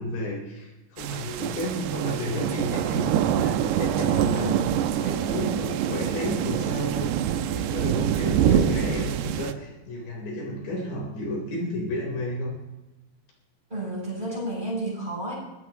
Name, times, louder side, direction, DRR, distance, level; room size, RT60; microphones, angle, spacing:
voice 1, 0.0-3.1 3.3-4.5 5.0-7.2 7.5-12.6, left 1 dB, 85° left, -1 dB, 6.3 m, -32 dB
sound 1, 1.0-9.5, right 10 dB, 90° right, 2.8 m, -25 dB
voice 2, 8.4-8.7 13.7-15.3, right 1 dB, 10° right, -4 dB, 7.8 m, -31 dB
23.5 x 17.5 x 3.1 m, 1.0 s
omnidirectional pair, 4.8 m